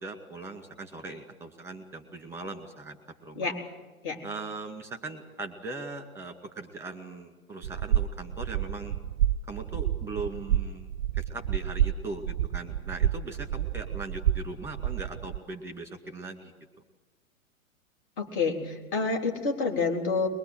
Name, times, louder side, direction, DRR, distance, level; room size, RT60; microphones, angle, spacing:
voice 1, 0.0-3.0 3.2-3.5 4.2-8.9 9.5-10.9 11.2-16.5, right 3 dB, 5° right, 7 dB, 2.2 m, -39 dB
sound 1, 7.6-15.4, right 10 dB, 50° right, 0.7 m, -29 dB
voice 2, 18.2-20.3, left 4 dB, 40° left, 2 dB, 3.8 m, -28 dB
22.0 x 22.0 x 8.0 m, 1.2 s
figure-of-eight pair, 110°, 42 cm